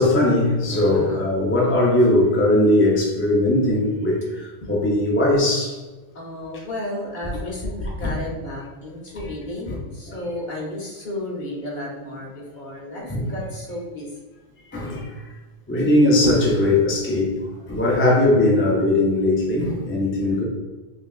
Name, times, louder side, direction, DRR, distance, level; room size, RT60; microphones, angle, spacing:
voice 1, 0.0-5.8 8.0-8.1 9.7-9.8 10.1-10.2 13.1-13.3 14.7-15.2 15.7-20.4, left 1 dB, 15° left, -3 dB, 0.4 m, -19 dB
voice 2, 0.9-1.2 4.6-4.7 6.1-14.1, left 1 dB, 50° left, -4 dB, 1.0 m, -33 dB
5.3 x 2.3 x 2.3 m, 1.2 s
omnidirectional pair, 1.1 m